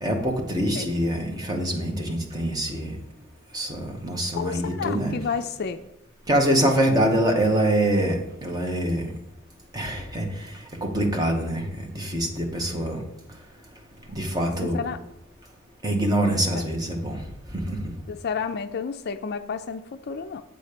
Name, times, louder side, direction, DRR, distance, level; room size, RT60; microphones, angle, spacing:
voice 1, 0.0-3.0 3.5-5.1 6.3-9.1 9.7-10.3 10.8-11.6 11.9-13.0 14.1-14.8 15.8-17.2 17.7-17.8, right 1 dB, 20° right, 1 dB, 1.2 m, -24 dB
voice 2, 4.3-5.8 14.6-15.0 16.5-16.6 18.1-20.4, left 6 dB, 50° left, 10 dB, 0.4 m, -31 dB
8.1 x 4.1 x 6.7 m, 0.84 s
head